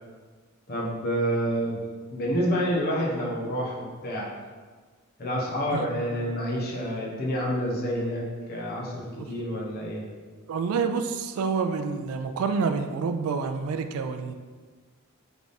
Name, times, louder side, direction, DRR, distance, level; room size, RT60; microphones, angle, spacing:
voice 1, 0.7-1.8 2.1-4.3 5.2-10.0, equal, 45° left, -4 dB, 0.9 m, -28 dB
voice 2, 10.5-14.3, right 5 dB, 85° right, 7 dB, 0.3 m, -28 dB
3.5 x 3.4 x 4.1 m, 1.4 s
head